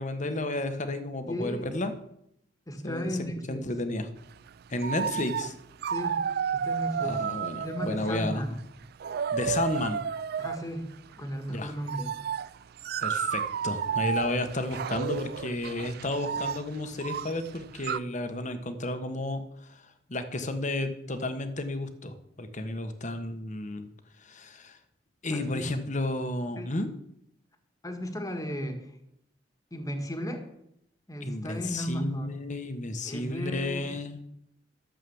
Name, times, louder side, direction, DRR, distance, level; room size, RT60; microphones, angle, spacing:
voice 1, 0.0-1.9 2.8-3.2 3.5-4.1 4.7-5.5 7.0-8.6 9.3-10.0 11.5-11.7 13.0-19.8 20.1-23.9 24.2-24.8 25.2-26.9 31.2-34.2, left 2 dB, 45° left, 9 dB, 1.3 m, -32 dB
voice 2, 1.3-1.7 2.7-3.7 5.8-6.2 6.5-7.2 7.6-8.6 10.4-10.9 11.2-12.1 25.3-25.6 26.6-26.7 27.8-28.9 29.7-30.4 31.1-32.3 33.0-33.9, equal, 20° left, 6 dB, 1.7 m, -35 dB
sound 1, 4.5-4.6 4.8-5.6 5.8-8.3 8.8-10.7 11.8-18.0, right 7 dB, 60° right, 0.4 m, -32 dB
13.0 x 7.6 x 7.1 m, 0.76 s
head